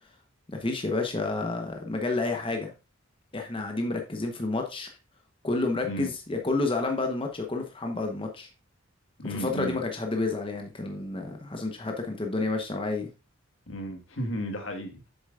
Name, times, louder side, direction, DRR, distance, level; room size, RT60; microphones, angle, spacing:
voice 1, 0.5-2.7 3.3-4.9 5.4-8.5 9.3-13.1, left 3 dB, 25° left, 1.0 m, -30 dB
voice 2, 9.2-9.8 13.7-15.1, equal, 70° left, 1.6 m, -34 dB
7.7 x 7.1 x 2.5 m
head